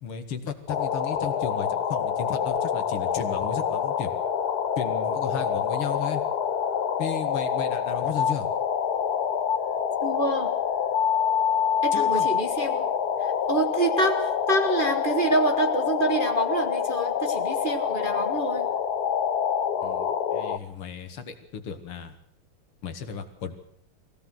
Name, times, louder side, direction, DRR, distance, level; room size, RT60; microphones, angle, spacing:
voice 1, 0.0-4.1 4.8-6.2 7.0-8.5 11.9-12.3 19.8-22.2 22.8-23.5, left 7 dB, 80° left, 8 dB, 2.8 m, -34 dB
sound 1, 0.7-20.6, left 8 dB, 55° left, 1.4 m, -26 dB
voice 2, 10.0-10.5 11.8-12.9 13.2-18.7, right 2 dB, 30° right, 4 dB, 1.3 m, -27 dB
23.5 x 16.5 x 7.8 m, 0.68 s
omnidirectional pair, 2.4 m